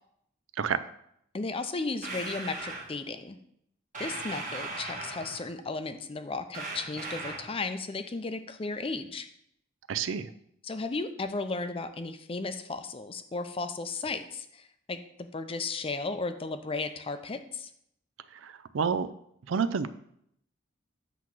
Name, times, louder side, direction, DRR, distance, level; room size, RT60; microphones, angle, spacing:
voice 1, 1.3-3.4 4.0-9.3 10.6-17.7, left 3 dB, 30° left, 9 dB, 0.5 m, -35 dB
sound 1, 2.0-2.9 3.9-5.5 6.5-7.6, right 3 dB, 40° right, 1.3 m, -38 dB
voice 2, 9.9-10.3 18.3-19.1 19.5-19.9, right 6 dB, 85° right, 13 dB, 0.4 m, -29 dB
8.1 x 3.1 x 6.0 m, 0.72 s
head